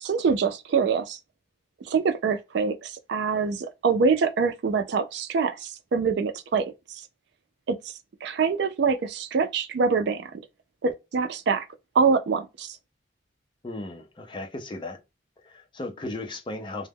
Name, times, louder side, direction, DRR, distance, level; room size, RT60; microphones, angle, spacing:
voice 1, 0.0-1.2 1.9-7.0 7.7-7.8 8.2-10.3 10.8-11.7 12.0-12.8, right 5 dB, 60° right, 0.3 m, -25 dB
voice 2, 13.6-15.0 15.4-16.9, left 2 dB, 25° left, 0.4 m, -36 dB
2.1 x 2.0 x 3.3 m
head